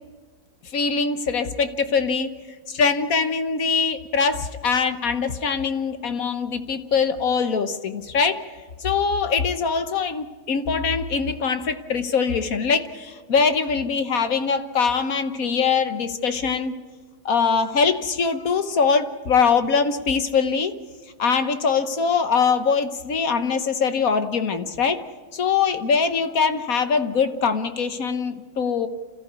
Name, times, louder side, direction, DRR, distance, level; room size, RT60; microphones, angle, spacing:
voice 1, 0.7-2.3 2.7-8.4 8.8-16.8 17.2-20.8 21.2-25.0 25.3-28.9, left 5 dB, 50° left, 9 dB, 1.2 m, -22 dB
28.5 x 14.5 x 8.2 m, 1.5 s
omnidirectional pair, 2.4 m